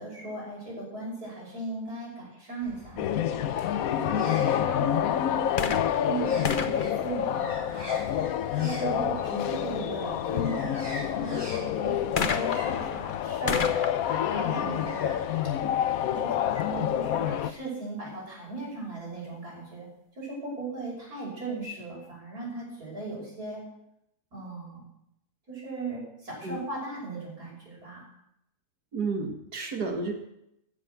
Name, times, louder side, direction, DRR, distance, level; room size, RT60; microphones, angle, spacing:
voice 1, 0.0-3.2 3.7-5.8 6.0-8.0 8.6-15.2 16.1-19.9 20.1-23.6 24.3-24.8 25.5-28.1, right 2 dB, 75° right, -5 dB, 6.6 m, -37 dB
sound 1, 2.6-15.5, equal, 15° right, 4.1 m, -46 dB
sound 2, 3.0-17.5, left 10 dB, 70° left, 1.1 m, -28 dB
sound 3, 5.5-8.1 12.2-15.8 16.6-16.7, left 5 dB, 40° left, 0.9 m, -34 dB
voice 2, 28.9-30.1, right 4 dB, 90° right, 4 dB, 2.6 m, -31 dB
15.0 x 8.0 x 7.8 m, 0.79 s
omnidirectional pair, 1.6 m